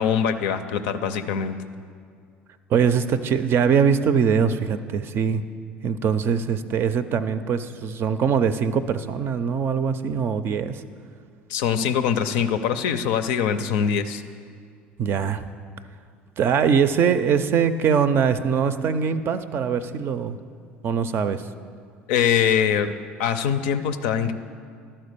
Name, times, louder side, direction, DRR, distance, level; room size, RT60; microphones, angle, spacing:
voice 1, 0.0-1.6 11.5-14.2 22.1-22.9 23.2-24.3, left 8 dB, 70° left, 9 dB, 0.5 m, -23 dB
voice 2, 2.7-5.4 5.8-10.8 15.0-15.4 16.4-20.4 20.8-21.4, right 7 dB, 45° right, 11 dB, 0.5 m, -22 dB
12.0 x 4.4 x 6.7 m, 2.2 s
hypercardioid pair, 65°, 5 cm